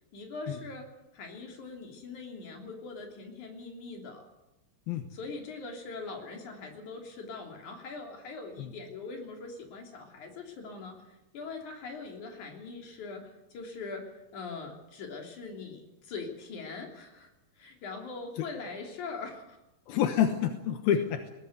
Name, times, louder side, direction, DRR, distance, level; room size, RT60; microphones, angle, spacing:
voice 1, 0.1-4.3 5.1-17.3 17.6-19.6, left 4 dB, 55° left, 2 dB, 4.3 m, -42 dB
voice 2, 19.9-21.3, left 9 dB, 80° left, 6 dB, 3.0 m, -28 dB
20.5 x 17.5 x 8.1 m, 0.98 s
omnidirectional pair, 4.4 m